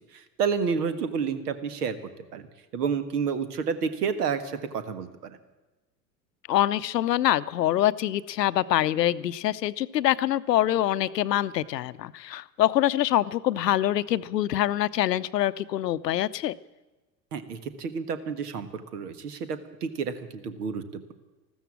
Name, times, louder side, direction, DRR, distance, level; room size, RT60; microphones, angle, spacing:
voice 1, 0.1-2.0 2.3-2.5 2.7-5.4 17.3-21.1, right 6 dB, 65° right, 12 dB, 1.6 m, -30 dB
voice 2, 6.5-16.5, left 13 dB, 75° left, 17 dB, 0.7 m, -25 dB
14.0 x 13.5 x 7.3 m, 1.1 s
figure-of-eight pair, 85°, 50 cm